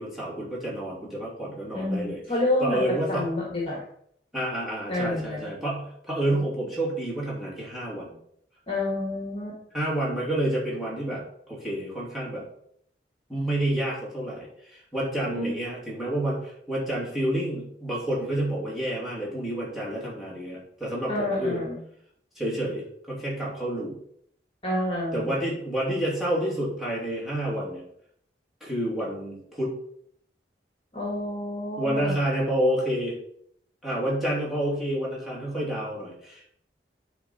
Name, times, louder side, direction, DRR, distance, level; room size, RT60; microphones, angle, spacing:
voice 1, 0.0-2.2 2.6-3.3 4.3-8.2 9.7-12.5 13.3-21.6 22.4-24.0 25.1-27.8 28.6-29.7 31.8-33.2 33.8-36.6, right 1 dB, ahead, -6 dB, 2.6 m, -29 dB
voice 2, 1.7-3.8 4.9-5.5 8.7-9.6 15.3-15.6 21.1-21.8 24.6-25.3 30.9-32.2, left 1 dB, 30° left, -3 dB, 1.7 m, -28 dB
10.0 x 3.7 x 4.3 m, 0.67 s
head